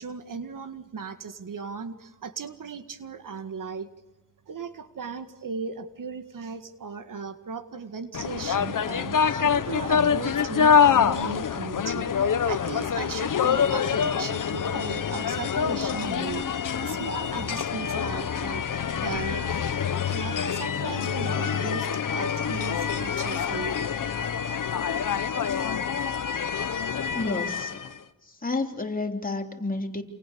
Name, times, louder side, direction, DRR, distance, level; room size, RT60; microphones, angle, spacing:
voice 1, 0.0-3.9 4.5-18.6 19.0-19.6 20.1-23.8, right 5 dB, 65° right, 9 dB, 2.0 m, -37 dB
sound 1, 8.1-28.0, left 7 dB, 65° left, 1.4 m, -26 dB
voice 2, 26.5-27.9 28.2-30.0, left 3 dB, 25° left, 4 dB, 3.5 m, -32 dB
28.5 x 28.0 x 7.0 m, 1.0 s
wide cardioid pair, 95°, 34 cm